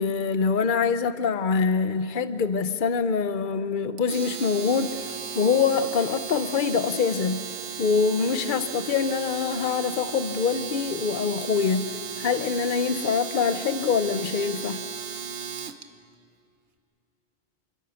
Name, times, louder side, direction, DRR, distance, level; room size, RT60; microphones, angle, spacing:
voice 1, 0.0-7.4 7.8-11.9 12.2-14.8, left 5 dB, 50° left, 11 dB, 1.0 m, -25 dB
Domestic sounds home sounds, 4.0-15.8, right 6 dB, 75° right, 1.3 m, -35 dB
27.5 x 22.0 x 7.1 m, 2.5 s
omnidirectional pair, 1.2 m